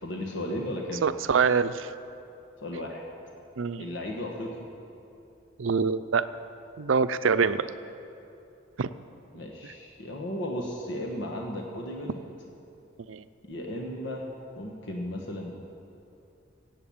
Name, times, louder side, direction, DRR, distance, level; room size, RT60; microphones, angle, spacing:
voice 1, 0.0-1.0 2.6-3.0 3.8-4.5 9.3-12.2 13.5-14.3 14.6-15.5, left 1 dB, 65° left, 0 dB, 1.4 m, -35 dB
voice 2, 1.0-1.9 3.6-3.9 5.6-6.3 6.8-7.7 8.8-8.9 13.1-13.2, right 5 dB, 80° right, 13 dB, 0.5 m, -25 dB
16.0 x 8.0 x 8.6 m, 2.7 s
head